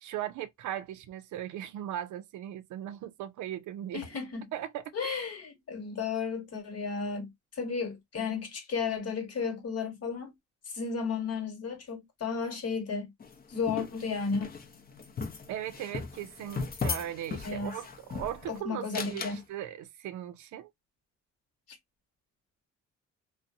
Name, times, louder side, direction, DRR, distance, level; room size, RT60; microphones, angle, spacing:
voice 1, 0.0-4.0 4.5-5.3 15.5-20.7, right 11 dB, 75° right, 0.5 m, -38 dB
voice 2, 3.9-4.5 4.9-10.3 10.7-13.1 13.5-14.5 17.4-17.7 18.5-19.4, left 5 dB, 55° left, 1.2 m, -33 dB
sound 1, 13.2-18.5 18.9-19.4, left 4 dB, 30° left, 0.6 m, -37 dB
2.6 x 2.0 x 2.5 m
cardioid pair, 90°, 30 cm